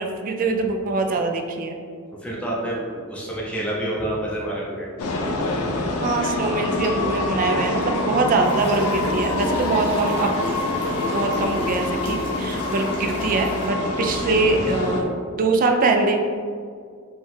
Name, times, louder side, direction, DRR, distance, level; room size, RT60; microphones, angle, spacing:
voice 1, 0.0-1.8 6.0-10.4 11.1-16.2, right 3 dB, 40° right, 4 dB, 0.3 m, -23 dB
voice 2, 2.1-4.9 5.6-5.7 13.8-14.0, right 1 dB, 5° left, -5 dB, 0.6 m, -28 dB
sound 1, 5.0-15.0, left 2 dB, 90° left, 0.5 m, -25 dB
sound 2, 8.4-13.7, left 1 dB, 25° left, 0.9 m, -37 dB
5.2 x 2.3 x 3.6 m, 2.1 s
head